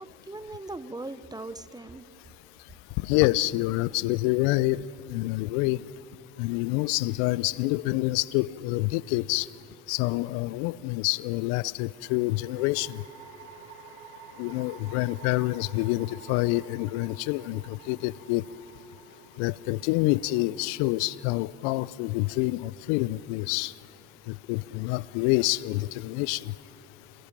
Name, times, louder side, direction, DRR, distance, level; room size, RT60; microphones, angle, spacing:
voice 1, 0.0-2.1, right 2 dB, 10° right, 15 dB, 0.8 m, -39 dB
voice 2, 3.0-5.8 6.4-9.5 9.9-13.0 14.4-18.4 19.4-23.8 24.2-26.6, left 19 dB, 65° left, 22 dB, 0.6 m, -27 dB
sound 1, 8.8-9.5 11.9-23.3, right 5 dB, 65° right, 4.7 m, -51 dB
28.0 x 21.0 x 7.5 m, 3.0 s
hypercardioid pair, 75°, 42 cm